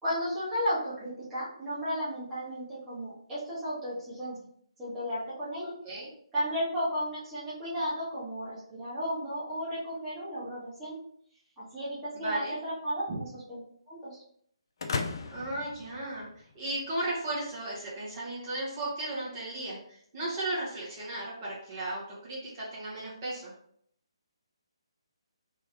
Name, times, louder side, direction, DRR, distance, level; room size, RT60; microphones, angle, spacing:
voice 1, 0.0-4.4 4.8-5.7 6.3-11.0 11.6-13.6 13.9-14.2, equal, 10° right, -11 dB, 1.5 m, -34 dB
voice 2, 12.1-12.6 13.1-13.2 15.3-16.3 16.5-23.5, right 1 dB, 30° right, -8 dB, 1.5 m, -35 dB
sound 1, 14.8-16.7, left 4 dB, 50° left, 0.5 m, -36 dB
3.5 x 3.0 x 3.5 m, 0.65 s
figure-of-eight pair, 140°, 3 cm